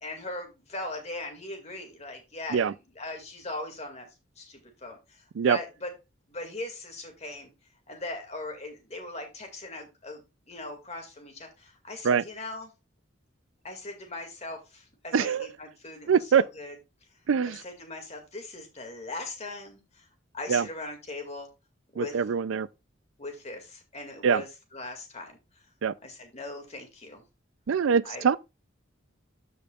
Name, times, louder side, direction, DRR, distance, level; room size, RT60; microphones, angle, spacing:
voice 1, 0.0-4.1 4.4-5.0 5.5-5.9 6.3-7.5 7.9-10.2 10.5-12.7 13.6-16.8 17.5-19.8 20.3-21.5 21.9-22.1 23.2-24.5 24.7-25.4 26.0-27.2 28.0-28.3, left 2 dB, 35° left, 2.2 m, -39 dB
voice 2, 15.1-15.5 16.1-16.4 17.3-17.6 20.5-20.7 22.0-22.7 24.2-24.4 25.8-25.9 27.7-28.4, right 6 dB, 90° right, 0.4 m, -23 dB
13.5 x 5.2 x 2.4 m
head